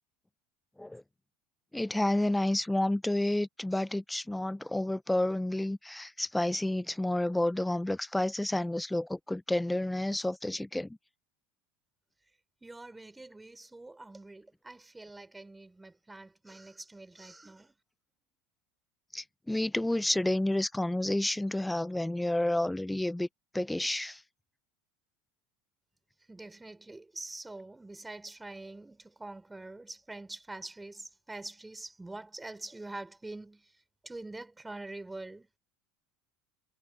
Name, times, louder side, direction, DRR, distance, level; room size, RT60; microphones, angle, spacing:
voice 1, 1.7-11.0 19.1-23.3 23.5-24.2, left 1 dB, 5° left, 0.6 m, -30 dB
voice 2, 12.6-17.7 26.3-33.6 34.0-35.5, right 2 dB, 10° right, 3.6 m, -45 dB
hypercardioid pair, 95°, 0 cm